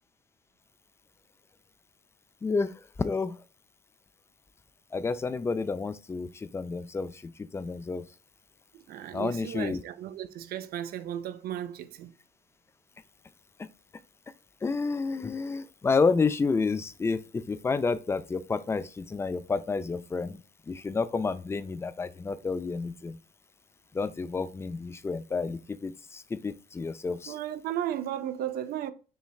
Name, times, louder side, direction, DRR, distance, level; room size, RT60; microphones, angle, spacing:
voice 1, 2.4-2.7 3.0-3.4 4.9-8.0 9.1-9.8 14.6-17.2 17.5-20.4 20.7-23.2 23.9-27.3, left 4 dB, 15° left, 0.3 m, -30 dB
voice 2, 8.9-12.1 27.3-28.9, right 11 dB, 65° right, 0.5 m, -35 dB
5.5 x 3.1 x 2.3 m
cardioid pair, 110°, 17 cm